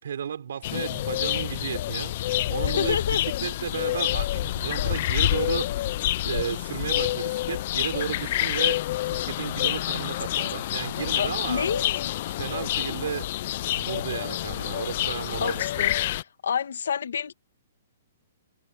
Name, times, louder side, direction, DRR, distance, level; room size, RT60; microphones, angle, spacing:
voice 1, 0.0-8.8 9.1-11.9 12.3-13.5 13.7-15.9, right 8 dB, 65° right, 5.4 m, -33 dB
sound 1, 0.6-16.2, left 14 dB, 35° left, 0.3 m, -28 dB
voice 2, 2.6-3.2 11.2-12.1 15.4-15.9 16.4-17.3, left 7 dB, 75° left, 1.8 m, -28 dB
hypercardioid pair, 175°, 0 cm